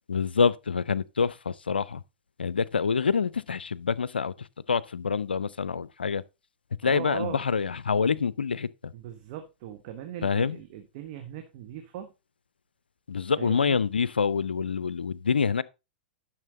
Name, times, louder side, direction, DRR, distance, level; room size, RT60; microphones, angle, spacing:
voice 1, 0.1-2.0 2.4-6.2 6.8-8.9 10.2-10.6 13.1-15.6, left 5 dB, 80° left, 0.5 m, -26 dB
voice 2, 6.8-7.4 8.9-12.1 13.4-13.8, right 10 dB, 45° right, 1.3 m, -39 dB
11.0 x 6.4 x 4.1 m
figure-of-eight pair, 105°, 5 cm